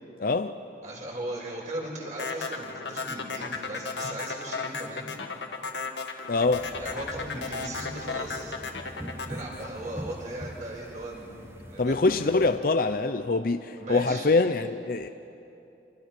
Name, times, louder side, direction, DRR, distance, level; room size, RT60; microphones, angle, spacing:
voice 1, 0.2-0.5 6.3-6.7 11.8-15.1, left 3 dB, 55° left, 0.7 m, -24 dB
voice 2, 0.8-5.1 6.8-8.6 9.2-11.4 11.6-12.4 13.8-14.3, right 1 dB, 45° right, 6.4 m, -38 dB
sound 1, 2.2-10.5, left 4 dB, 85° left, 1.8 m, -34 dB
sound 2, 6.4-12.6, equal, 15° right, 1.0 m, -43 dB
28.5 x 27.0 x 6.1 m
head